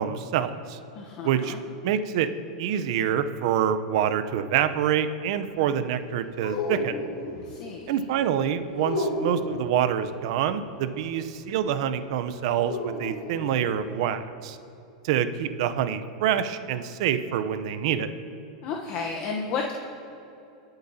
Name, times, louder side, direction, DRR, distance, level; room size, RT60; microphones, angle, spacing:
voice 1, 0.0-0.8 1.2-1.6 1.8-2.3 2.6-7.0 7.9-14.6 15.0-18.1, right 9 dB, 65° right, 10 dB, 0.7 m, -26 dB
voice 2, 0.9-1.6 7.3-8.0 18.6-19.7, left 5 dB, 45° left, 0 dB, 1.0 m, -32 dB
sound 1, 6.4-7.4 8.8-9.6 12.6-13.7, left 2 dB, 80° left, 2.8 m, -31 dB
23.0 x 7.9 x 2.8 m, 2.8 s
supercardioid pair, 130°, 3 cm